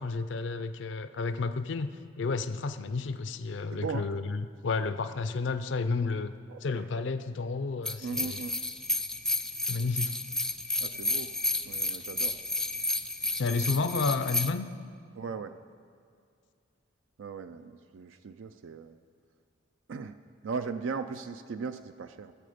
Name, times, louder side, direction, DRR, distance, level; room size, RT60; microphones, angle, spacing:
voice 1, 0.0-1.9 2.2-6.3 6.6-8.4 9.7-10.1 13.4-14.7, left 4 dB, 65° left, 10 dB, 0.4 m, -31 dB
voice 2, 3.7-4.1 6.5-6.8 8.0-8.5 10.8-11.3 11.6-12.4 15.2-15.6 17.2-19.0 19.9-20.2 20.4-22.3, right 5 dB, 75° right, 10 dB, 0.4 m, -38 dB
sound 1, 7.9-14.5, left 2 dB, 5° left, 0.3 m, -32 dB
18.0 x 7.6 x 5.1 m, 2.2 s
head